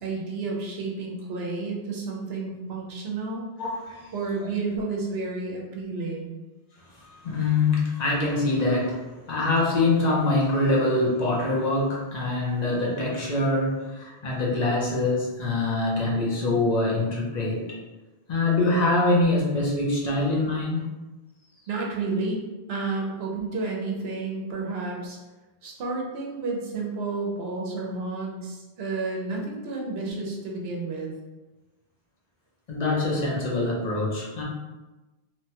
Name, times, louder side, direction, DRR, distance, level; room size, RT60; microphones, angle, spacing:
voice 1, 0.0-3.5 4.1-6.3 21.7-22.4 22.7-25.2 25.6-31.1, right 3 dB, 70° right, -1 dB, 0.9 m, -31 dB
voice 2, 3.6-4.1 7.0-17.7 18.3-20.8 32.7-34.4, left 2 dB, 45° left, -4 dB, 0.7 m, -24 dB
2.9 x 2.2 x 2.8 m, 1.1 s
omnidirectional pair, 1.1 m